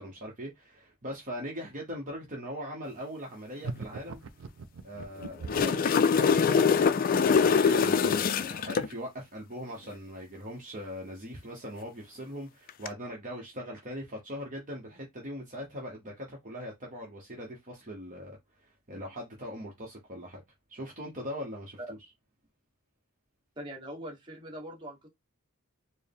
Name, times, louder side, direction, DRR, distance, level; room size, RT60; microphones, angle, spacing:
voice 1, 0.0-4.2 4.8-7.1 7.4-20.4 20.7-22.0, equal, 40° right, 0.9 m, -41 dB
sound 1, 3.6-5.8, right 4 dB, 65° right, 0.5 m, -40 dB
sound 2, 5.2-8.9 12.7-12.9, left 6 dB, 40° left, 0.3 m, -23 dB
voice 2, 23.6-25.1, right 1 dB, 25° right, 1.3 m, -42 dB
4.5 x 2.1 x 3.4 m
head